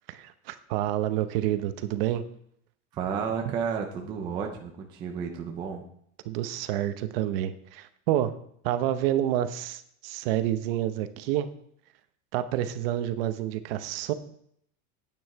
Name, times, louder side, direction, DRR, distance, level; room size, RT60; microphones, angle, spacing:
voice 1, 0.1-2.2 3.5-3.6 6.2-8.3 8.6-11.5 12.3-14.1, right 12 dB, 50° right, 11 dB, 0.9 m, -28 dB
voice 2, 2.9-5.8, right 6 dB, 15° right, 2 dB, 0.3 m, -32 dB
9.2 x 8.9 x 4.7 m, 0.66 s
supercardioid pair, 180°, 37 cm